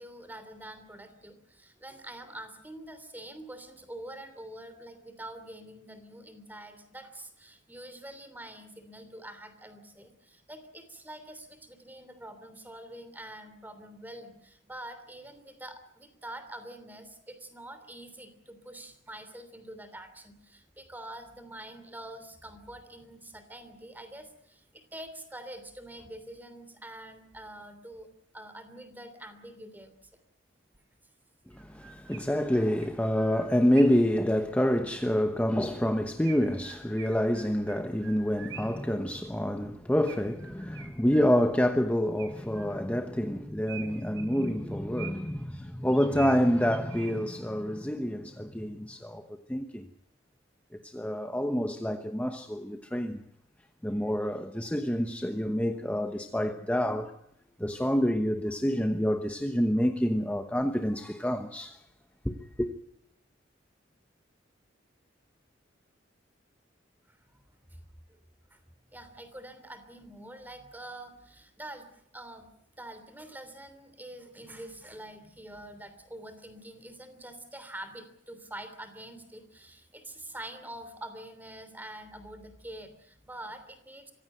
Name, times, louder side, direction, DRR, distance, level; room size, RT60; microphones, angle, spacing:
voice 1, 0.0-28.1 28.3-30.0 67.1-67.8 68.5-68.6 68.9-72.5 72.8-84.1, right 1 dB, 10° right, 3.2 m, -46 dB
Chirp tweet, 30.7-30.8 31.5-34.1 36.2-38.9 40.1-41.6 42.2-43.1 43.7-45.4 45.9-47.4, right 7 dB, 80° right, 3.5 m, -48 dB
voice 2, 31.5-49.9 50.8-53.2 53.8-57.1 57.6-61.8 62.2-62.7, equal, 10° left, 1.0 m, -27 dB
24.5 x 16.0 x 9.1 m
head